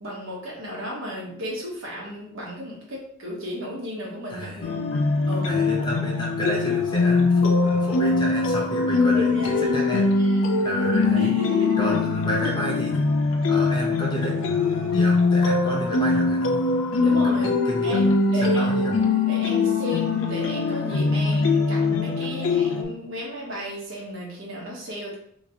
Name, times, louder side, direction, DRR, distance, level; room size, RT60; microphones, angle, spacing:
voice 1, 0.0-4.6 5.3-5.6 9.2-9.7 10.0-10.5 11.2-12.0 17.0-17.5 17.8-18.8 19.3-25.2, equal, 80° right, -4 dB, 1.1 m, -33 dB
voice 2, 4.3-4.8 5.4-10.1 10.6-11.3 11.8-13.2 13.5-16.6 17.0-17.3 17.6-19.0, equal, 25° left, -3 dB, 0.8 m, -31 dB
sound 1, 4.6-22.8, left 3 dB, 90° left, 0.5 m, -22 dB
4.0 x 2.9 x 2.8 m, 0.67 s
head